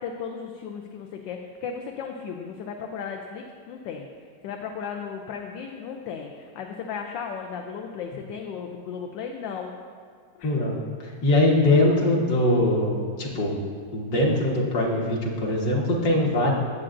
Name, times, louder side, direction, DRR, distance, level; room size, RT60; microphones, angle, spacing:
voice 1, 0.0-4.1 4.4-9.7 10.3-10.6, left 6 dB, 80° left, 3 dB, 1.3 m, -35 dB
voice 2, 10.4-12.9 13.2-13.5 13.9-16.5, left 1 dB, 60° left, -2 dB, 2.0 m, -22 dB
16.5 x 7.5 x 2.5 m, 2.2 s
omnidirectional pair, 2.0 m